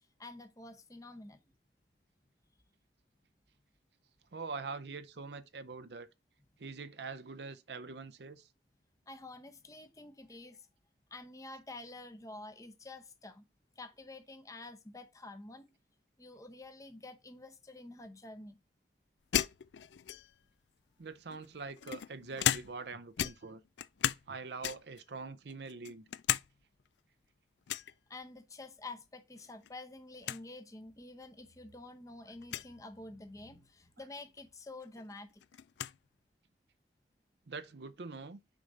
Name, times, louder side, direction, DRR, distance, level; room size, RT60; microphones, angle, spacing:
voice 1, 0.2-1.4 9.1-10.6 11.1-13.4 13.8-15.7 16.2-18.6 28.1-35.3, left 2 dB, 20° left, 0.8 m, -49 dB
voice 2, 4.3-6.1 6.6-8.5 21.0-23.6 24.3-26.0 37.5-38.4, right 4 dB, 70° right, 0.6 m, -44 dB
sound 1, 19.3-20.5 21.3-22.9 23.2-24.3 24.6-25.0 25.5-26.5 26.8-26.9 27.7-27.9 29.4-29.7 30.0-30.1 30.2-30.4 31.2-31.3 32.4-32.7 34.4-34.5 34.8-36.0, left 11 dB, 75° left, 0.4 m, -35 dB
6.5 x 5.2 x 4.1 m
head